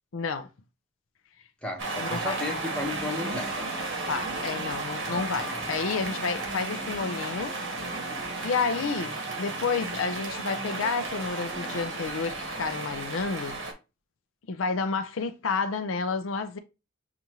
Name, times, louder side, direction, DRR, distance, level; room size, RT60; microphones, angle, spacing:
voice 1, 0.1-0.5 2.0-2.4 4.1-7.5 8.4-13.6 14.5-16.6, left 4 dB, 75° left, 0.5 m, -30 dB
voice 2, 1.6-3.7, left 2 dB, 5° left, 1.2 m, -33 dB
sound 1, 1.8-13.7, right 2 dB, 65° right, 1.4 m, -33 dB
6.7 x 2.5 x 2.9 m
head